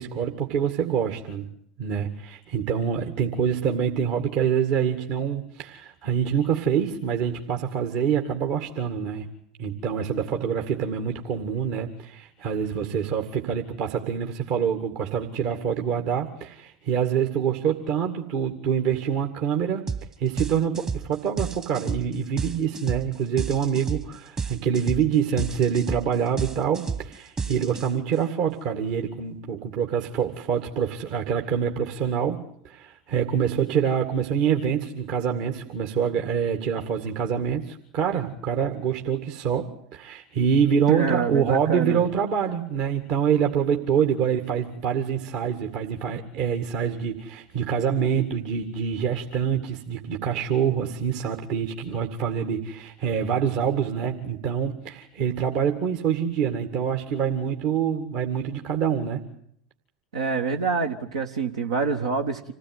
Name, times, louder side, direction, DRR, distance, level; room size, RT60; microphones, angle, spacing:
voice 1, 0.0-1.5 1.8-9.3 9.6-19.9 20.2-59.2, right 8 dB, 55° right, 4 dB, 2.2 m, -26 dB
sound 1, 19.9-20.1 20.4-28.2, right 5 dB, 25° right, 1.4 m, -31 dB
voice 2, 40.9-42.0 60.1-62.5, right 5 dB, 75° right, 2 dB, 1.5 m, -26 dB
27.0 x 17.0 x 9.6 m, 0.69 s
figure-of-eight pair, 80°, 3 cm